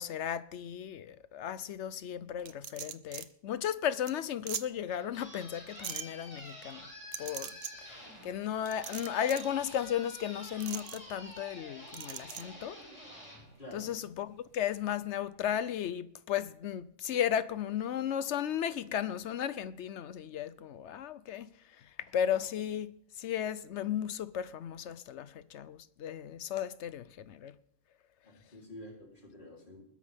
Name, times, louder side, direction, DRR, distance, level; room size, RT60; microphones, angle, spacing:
voice 1, 0.0-6.9 7.2-12.8 13.7-21.5 21.8-27.6, left 9 dB, 70° left, 0.9 m, -35 dB
sound 1, 2.5-3.3 3.7-3.8 4.1-4.2 4.5-4.6 5.8-6.0 7.1-7.7 8.7-9.5 10.6-11.0 11.9-12.4, right 9 dB, 60° right, 0.9 m, -40 dB
sound 2, 4.7-14.3, equal, 25° left, 6.0 m, -49 dB
voice 2, 13.6-13.9 28.2-29.8, left 1 dB, 40° left, 3.5 m, -49 dB
20.5 x 11.0 x 3.5 m
omnidirectional pair, 1.3 m